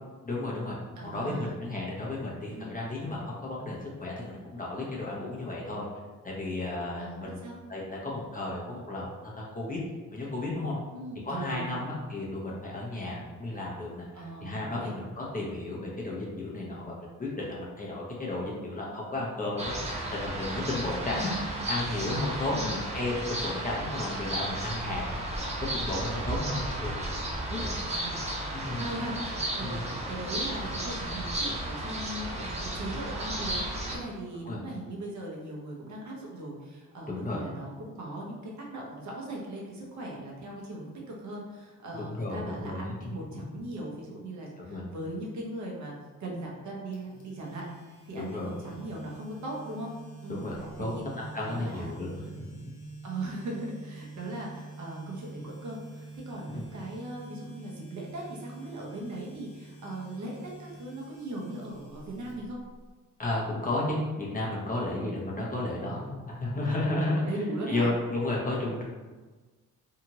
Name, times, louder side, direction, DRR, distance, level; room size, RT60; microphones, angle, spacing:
voice 1, 0.2-0.8 1.0-5.8 6.2-9.8 10.1-10.8 11.2-21.3 21.7-25.0 25.7-27.0 27.5-27.8 28.5-28.8 29.6-29.9 34.4-34.6 37.1-37.4 41.9-42.9 44.6-44.8 48.2-48.6 50.3-50.9 51.2-52.6 56.5-56.7 63.2-67.2 67.7-68.8, left 2 dB, 25° left, -4 dB, 0.8 m, -33 dB
voice 2, 1.0-1.5 2.5-2.8 7.0-7.6 10.9-11.9 14.1-14.9 20.9-21.3 22.5-22.8 27.8-45.9 46.2-47.7 48.1-49.9 50.2-50.4 50.8-51.1 51.4-52.0 53.0-62.6 67.1-67.9, right 1 dB, 60° right, -2 dB, 0.8 m, -39 dB
sound 1, 19.6-34.0, right 1 dB, 20° right, 0.7 m, -33 dB
sound 2, 46.9-62.9, right 3 dB, 65° left, 0.8 m, -47 dB
2.8 x 2.4 x 2.9 m, 1.3 s
cardioid pair, 95°, 33 cm